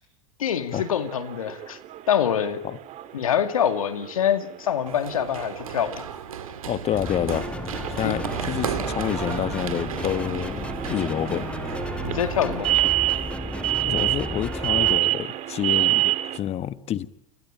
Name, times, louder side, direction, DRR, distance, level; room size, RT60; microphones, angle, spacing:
voice 1, 0.4-1.8 2.1-2.6 3.1-6.0 8.0-8.2 12.0-12.9, left 9 dB, 85° left, 9 dB, 2.3 m, -25 dB
sound 1, 0.7-16.4, right 16 dB, 45° right, 2.5 m, -29 dB
Run, 4.9-12.6, right 8 dB, 85° right, 2.5 m, -34 dB
voice 2, 6.7-7.5 7.9-11.5 13.8-17.1, left 11 dB, 35° left, 14 dB, 1.4 m, -28 dB
sound 2, 6.9-15.0, left 2 dB, 5° left, 1.3 m, -34 dB
28.5 x 21.5 x 8.9 m, 0.75 s
hypercardioid pair, 95°, 17 cm